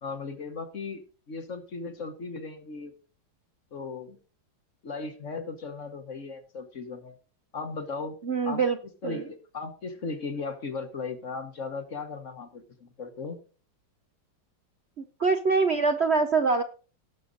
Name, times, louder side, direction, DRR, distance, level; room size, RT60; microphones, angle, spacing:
voice 1, 0.0-2.9 3.7-4.2 4.8-7.1 7.5-8.2 8.4-8.6 9.0-13.4, left 4 dB, 45° left, 8 dB, 1.4 m, -37 dB
voice 2, 8.2-8.8 9.0-9.2 15.0-16.6, right 4 dB, 50° right, 6 dB, 0.8 m, -24 dB
17.5 x 6.8 x 3.9 m, 0.37 s
omnidirectional pair, 2.0 m